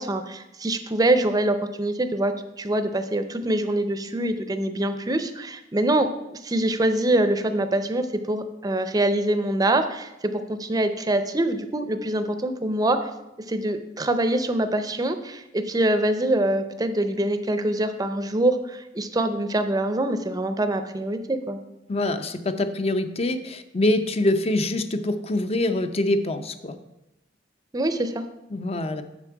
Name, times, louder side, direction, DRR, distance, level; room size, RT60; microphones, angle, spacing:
voice 1, 0.0-6.1 6.4-13.1 13.5-21.6 27.7-28.2, right 1 dB, 20° right, 9 dB, 0.5 m, -24 dB
voice 2, 21.9-26.8 28.5-29.0, left 1 dB, 35° left, 9 dB, 0.5 m, -25 dB
7.2 x 6.7 x 4.6 m, 0.90 s
head